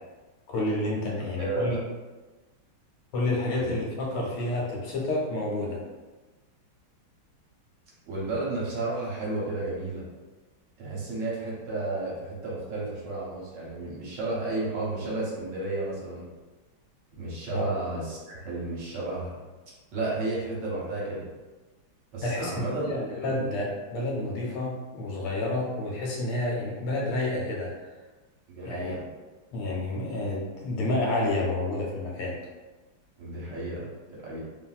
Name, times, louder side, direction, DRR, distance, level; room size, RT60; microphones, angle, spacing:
voice 1, 0.5-1.8 3.1-5.8 17.5-17.7 22.2-22.5 22.8-27.7 28.6-28.9 29.5-32.4, left 2 dB, 80° left, -3 dB, 1.5 m, -29 dB
voice 2, 1.4-1.8 3.5-3.7 8.0-10.0 10.8-16.3 17.2-19.3 19.9-21.3 22.1-22.8 23.2-23.3 28.5-29.0 33.2-34.4, right 2 dB, 65° right, -6 dB, 1.3 m, -32 dB
3.2 x 2.5 x 2.3 m, 1.2 s
omnidirectional pair, 2.2 m